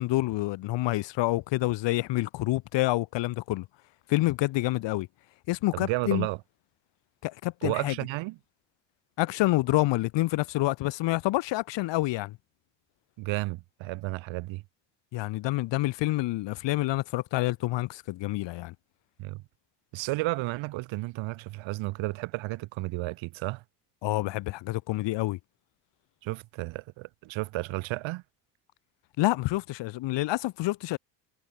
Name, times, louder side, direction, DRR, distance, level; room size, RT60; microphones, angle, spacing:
voice 1, 0.0-3.6 4.1-5.1 5.5-6.3 7.2-7.9 9.2-12.4 15.1-18.7 24.0-25.4 29.2-31.0, left 18 dB, 60° left, 1.2 m, -27 dB
voice 2, 5.7-6.4 7.6-8.4 13.2-14.6 19.2-19.4 19.9-23.6 26.2-28.2, right 20 dB, 65° right, 1.7 m, -32 dB
hypercardioid pair, 70°, 49 cm